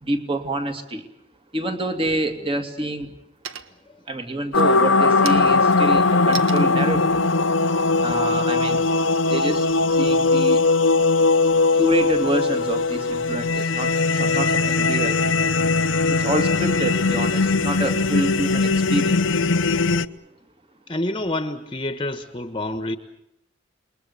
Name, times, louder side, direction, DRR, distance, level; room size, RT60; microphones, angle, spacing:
voice 1, 0.0-1.1 1.5-3.1 4.1-7.2 7.9-8.8 9.3-10.6 11.7-15.2 16.1-19.4, right 1 dB, 30° right, 7 dB, 2.5 m, -27 dB
sound 1, 2.2-2.4 2.8-3.2 3.4-4.0 4.5-8.9, right 7 dB, 85° right, 1.5 m, -38 dB
sound 2, 4.5-20.1, left 3 dB, 70° left, 0.9 m, -20 dB
voice 2, 20.9-23.0, left 1 dB, 25° left, 9 dB, 1.3 m, -27 dB
28.5 x 22.5 x 7.0 m, 0.81 s
head